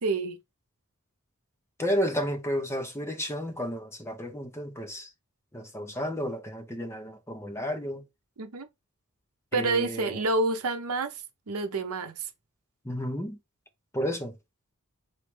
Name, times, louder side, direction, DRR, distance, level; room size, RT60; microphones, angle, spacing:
voice 1, 0.0-0.4 8.4-8.7 9.5-11.2 11.5-12.3, right 3 dB, 70° right, 0.7 m, -28 dB
voice 2, 1.8-5.1 5.5-8.0 9.5-10.2 12.8-13.4 13.9-14.3, equal, 10° left, 0.8 m, -32 dB
4.6 x 3.2 x 3.2 m
head